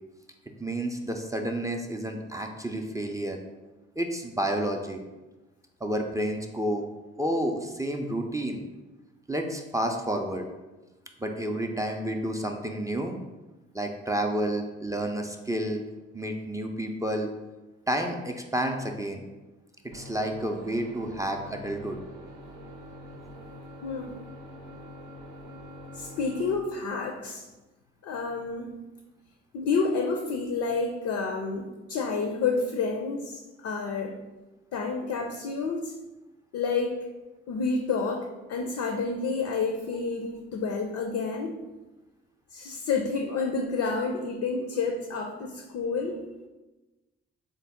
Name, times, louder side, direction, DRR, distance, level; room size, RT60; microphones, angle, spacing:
voice 1, 0.6-3.4 4.0-5.0 5.8-6.8 7.2-8.7 9.3-10.4 11.2-13.2 13.7-15.8 16.1-17.3 17.9-19.2 19.9-22.0, right 1 dB, 10° right, 3 dB, 0.4 m, -30 dB
sound 1, 19.9-26.6, equal, 70° right, 0.7 m, -45 dB
voice 2, 23.8-24.2 25.9-27.5 28.0-28.7 29.5-34.2 34.7-35.9 36.5-37.0 37.5-41.6 42.5-46.2, left 4 dB, 60° left, 3 dB, 0.5 m, -29 dB
3.9 x 2.0 x 3.5 m, 1.1 s
hypercardioid pair, 40°, 33 cm